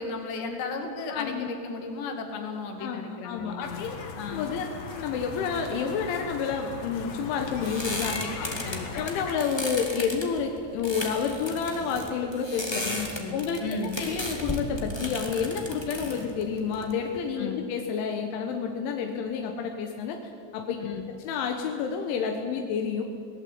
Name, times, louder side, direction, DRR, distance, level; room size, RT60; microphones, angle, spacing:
voice 1, 0.0-3.8 4.2-4.5 8.1-9.1 12.8-14.0 17.4-17.6 20.8-21.1, left 4 dB, 70° left, 4 dB, 4.6 m, -35 dB
voice 2, 1.1-1.5 2.8-4.0 4.3-4.7 4.9-8.1 8.5-8.6 8.9-12.8 13.3-20.2 20.5-20.8 21.1-23.0, left 6 dB, 85° left, 3 dB, 3.8 m, -30 dB
sound 1, 3.6-9.4, left 4 dB, 50° left, 2.2 m, -38 dB
sound 2, 6.9-17.3, left 1 dB, 10° left, 1.3 m, -35 dB
25.0 x 18.5 x 8.8 m, 2.4 s
omnidirectional pair, 5.3 m